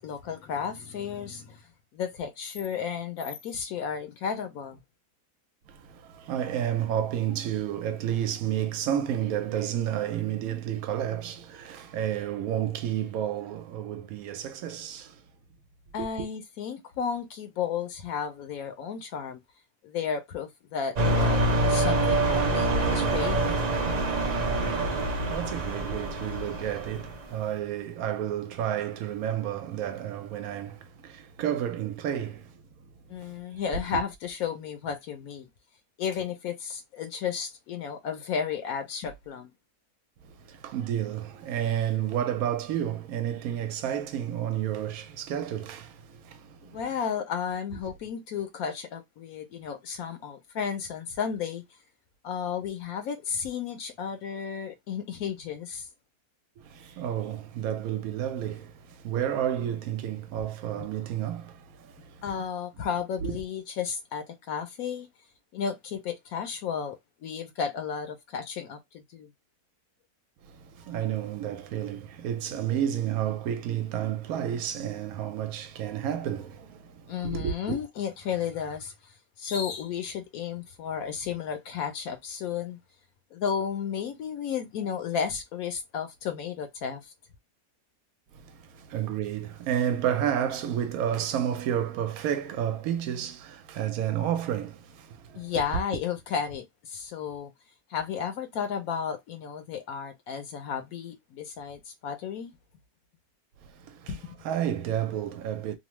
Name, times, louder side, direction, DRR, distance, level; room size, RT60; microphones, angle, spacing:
voice 1, 0.0-1.6 1.9-4.8 15.9-19.4 19.8-23.6 33.1-35.5 36.0-39.5 46.7-51.6 52.2-55.9 60.8-60.9 62.2-65.1 65.5-69.3 77.1-78.9 79.4-82.8 83.3-87.1 95.4-97.5 97.9-102.6 104.1-104.4, left 7 dB, 75° left, 1.0 m, -33 dB
voice 2, 5.7-15.2 16.0-16.1 24.3-24.5 24.8-32.9 33.2-33.8 40.2-46.8 56.6-62.3 70.4-77.8 88.3-95.5 103.6-105.8, right 10 dB, 75° right, 1.0 m, -31 dB
sound 1, 21.0-27.2, right 2 dB, 90° right, 0.3 m, -26 dB
2.9 x 2.1 x 3.0 m
omnidirectional pair, 1.6 m